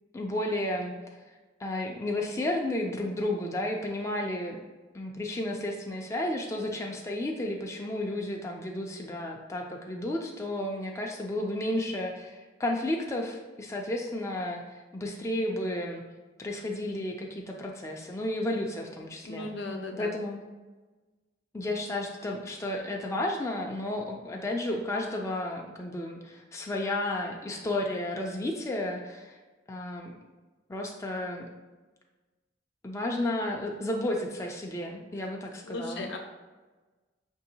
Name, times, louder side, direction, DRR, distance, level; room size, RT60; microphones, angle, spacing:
voice 1, 0.1-0.9 1.6-4.6 4.9-16.0 16.4-19.5 20.0-20.4 21.5-29.4 29.7-30.1 30.7-31.5 32.8-36.0, left 1 dB, 15° left, 0 dB, 0.3 m, -32 dB
voice 2, 19.2-20.1 35.2-35.3 35.6-36.2, left 2 dB, 70° left, 2 dB, 0.6 m, -36 dB
5.8 x 2.7 x 2.8 m, 1.2 s
head